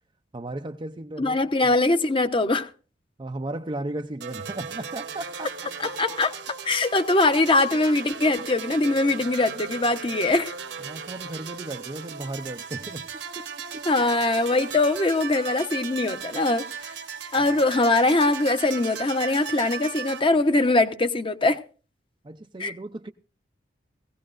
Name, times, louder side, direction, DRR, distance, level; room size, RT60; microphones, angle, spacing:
voice 1, 0.3-1.4 3.2-5.5 5.8-5.9 10.8-13.1 13.4-13.5 13.7-13.9 16.3-16.4 17.4-17.5 22.2-23.1, right 2 dB, 25° right, 0.5 m, -35 dB
voice 2, 1.2-2.7 5.8-6.3 6.7-10.5 13.9-16.7 17.3-21.6 22.6-22.7, left 2 dB, 30° left, 0.9 m, -22 dB
sound 1, 4.2-20.2, right 6 dB, 70° right, 1.2 m, -37 dB
18.5 x 16.5 x 2.5 m
head